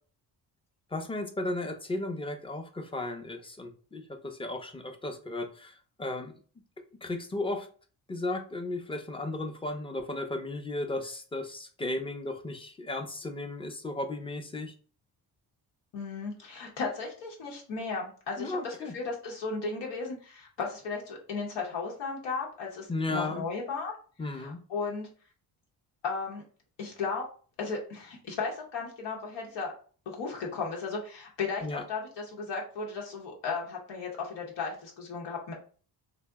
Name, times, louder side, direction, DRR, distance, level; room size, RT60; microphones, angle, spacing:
voice 1, 0.9-5.7 6.0-6.3 7.0-7.7 8.1-14.7 18.4-18.9 22.9-23.4 24.2-24.6 31.6-31.8, left 2 dB, 15° left, 5 dB, 0.4 m, -35 dB
voice 2, 15.9-23.9 24.3-25.1 26.0-26.4 26.8-27.3 27.6-29.7 30.1-35.5, left 4 dB, 90° left, -2 dB, 0.9 m, -35 dB
2.7 x 2.0 x 3.4 m, 0.41 s
cardioid pair, 85°, 42 cm